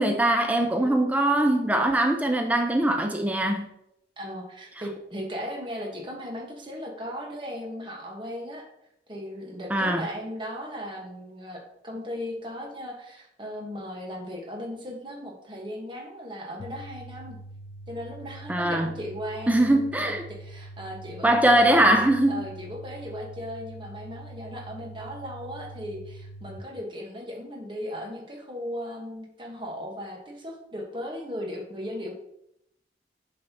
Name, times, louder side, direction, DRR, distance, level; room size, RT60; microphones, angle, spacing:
voice 1, 0.0-3.7 9.7-10.1 18.5-18.9 19.5-20.2 21.2-22.3, right 1 dB, 10° right, 0.5 m, -21 dB
voice 2, 0.6-1.0 4.2-8.6 9.1-17.4 17.9-22.0 22.3-32.1, equal, 25° right, 1.4 m, -37 dB
sound 1, 16.6-26.6, right 1 dB, 80° left, 0.6 m, -44 dB
7.4 x 6.5 x 3.0 m
head